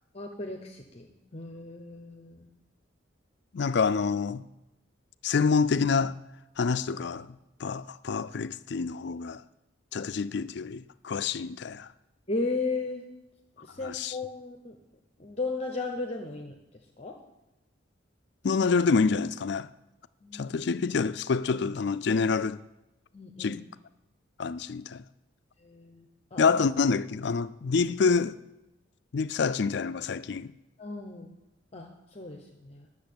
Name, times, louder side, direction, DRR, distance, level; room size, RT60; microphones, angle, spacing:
voice 1, 0.1-1.1 1.3-2.5 12.3-13.1 13.6-14.8 15.2-16.6 17.0-17.2 20.2-20.5 23.1-23.6 25.6-26.4 30.8-31.3 31.7-32.9, left 3 dB, 35° left, 0.9 m, -35 dB
voice 2, 3.5-4.5 5.2-6.2 6.6-7.3 7.6-9.4 9.9-11.9 13.8-14.2 18.4-19.7 20.3-22.6 23.4-23.6 24.4-25.0 26.4-28.4 29.1-30.5, left 5 dB, 60° left, 0.4 m, -27 dB
10.5 x 6.8 x 8.6 m
head